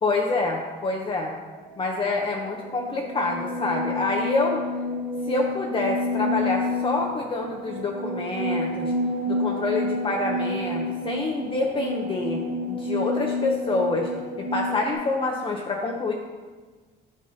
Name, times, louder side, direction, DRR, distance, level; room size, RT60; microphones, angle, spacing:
voice 1, 0.0-1.3 1.8-4.6 5.3-8.9 9.3-12.4 12.7-14.1 14.4-16.1, left 3 dB, 30° left, 0 dB, 0.7 m, -27 dB
sound 1, 1.6-14.9, left 1 dB, 55° right, 1.1 m, -29 dB
9.5 x 5.3 x 2.7 m, 1.4 s
cardioid pair, 110°, 17 cm